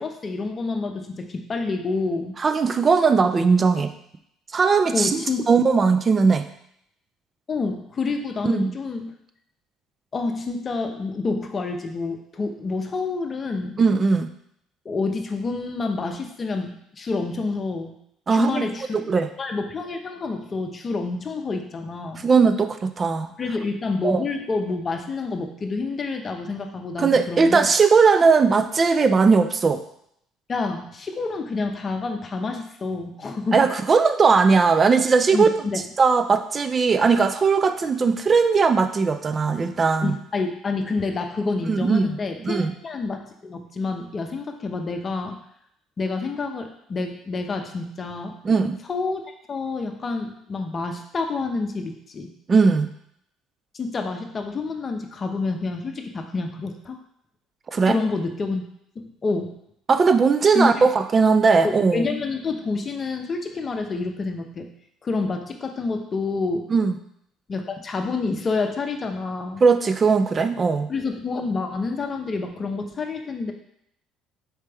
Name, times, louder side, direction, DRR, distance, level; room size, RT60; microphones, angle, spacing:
voice 1, 0.0-2.4 4.9-5.5 7.5-9.1 10.1-13.8 14.8-18.0 18.3-19.0 19.4-22.3 23.4-27.7 30.5-33.7 35.3-35.8 40.0-45.4 46.0-48.4 48.9-49.2 49.5-52.3 53.7-57.0 57.8-58.7 59.0-59.5 60.5-60.9 61.6-64.7 65.0-66.7 67.5-69.6 70.9-73.5, left 3 dB, 40° left, 4 dB, 0.6 m, -28 dB
voice 2, 2.4-3.9 4.5-5.2 5.5-6.5 8.4-8.7 13.8-14.3 18.3-18.6 19.1-19.3 22.2-23.3 24.0-24.2 27.0-29.8 33.5-35.5 36.0-40.2 41.7-42.2 42.4-42.7 48.4-48.8 52.5-52.9 57.7-58.0 59.9-62.1 66.7-67.0 69.6-70.9, right 5 dB, 35° right, 10 dB, 0.4 m, -19 dB
4.3 x 3.2 x 3.4 m, 0.73 s
hypercardioid pair, 70°, 0 cm